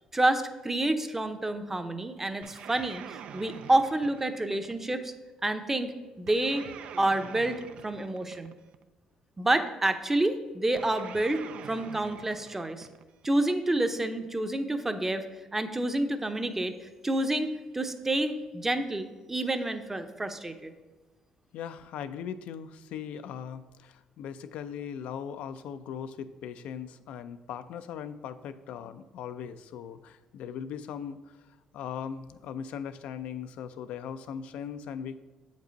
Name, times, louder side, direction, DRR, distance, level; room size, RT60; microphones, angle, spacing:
voice 1, 0.1-5.1 5.4-6.7 7.0-8.5 9.4-12.9 13.2-15.3 15.5-16.8 17.0-20.7, right 1 dB, 15° right, 8 dB, 0.7 m, -28 dB
sound 1, 2.4-5.0 6.3-8.8 10.8-13.3, right 8 dB, 70° right, 0.3 m, -46 dB
voice 2, 21.5-31.4 31.7-35.2, left 8 dB, 75° left, 11 dB, 0.4 m, -39 dB
7.8 x 5.3 x 3.9 m, 1.2 s
supercardioid pair, 80°, 2 cm